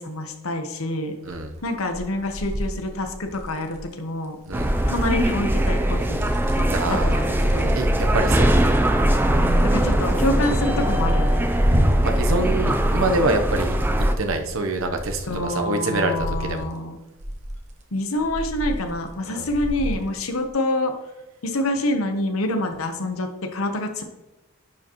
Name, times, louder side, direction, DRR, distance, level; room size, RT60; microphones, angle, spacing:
voice 1, 0.0-1.1 1.6-4.4 4.8-7.8 9.3-11.5 15.3-17.0 17.9-20.9 21.4-24.0, left 1 dB, 75° left, 5 dB, 1.0 m, -27 dB
sound 1, 1.2-1.6 1.9-3.8 4.6-5.3 5.7-6.7 7.0-13.4 13.7-15.4 15.9-16.6 17.2-17.7 18.1-19.1 19.5-20.0 20.5-20.6, equal, 35° right, 1.0 m, -28 dB
sound 2, 4.5-14.1, right 1 dB, 10° right, 0.4 m, -21 dB
voice 2, 6.7-7.2 7.8-8.6 9.5-9.8 12.0-13.8 14.2-16.7 19.3-19.5, right 2 dB, 70° right, 5 dB, 0.9 m, -25 dB
10.5 x 4.9 x 3.0 m, 0.99 s
head